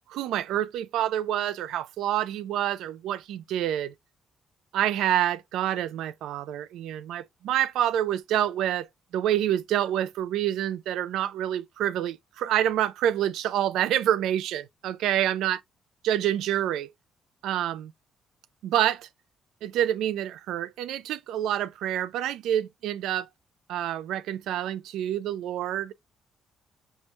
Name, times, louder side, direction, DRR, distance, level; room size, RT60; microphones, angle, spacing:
voice 1, 0.1-3.9 4.7-8.9 9.1-15.6 16.0-16.9 17.4-17.9 18.6-19.1 19.6-23.3 23.7-25.9, right 11 dB, 90° right, 0.3 m, -27 dB
4.4 x 2.1 x 4.4 m
cardioid pair, 120°, 0 cm